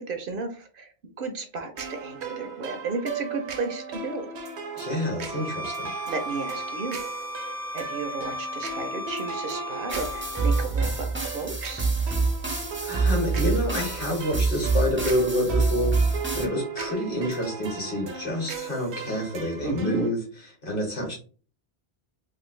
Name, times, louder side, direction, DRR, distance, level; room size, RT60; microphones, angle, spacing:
voice 1, 0.0-4.3 6.1-7.1 7.7-11.9 19.6-20.1, right 3 dB, 60° right, 6 dB, 0.7 m, -33 dB
sound 1, 1.8-20.1, right 5 dB, 85° right, 1.0 m, -37 dB
voice 2, 4.7-5.9 12.8-20.2 20.6-21.2, left 1 dB, 55° left, -1 dB, 1.7 m, -28 dB
Bowed string instrument, 5.3-10.7, left 1 dB, 40° left, 0.5 m, -35 dB
sound 2, 9.9-16.5, right 3 dB, 15° right, 0.4 m, -26 dB
3.3 x 2.5 x 3.1 m, 0.39 s
omnidirectional pair, 1.1 m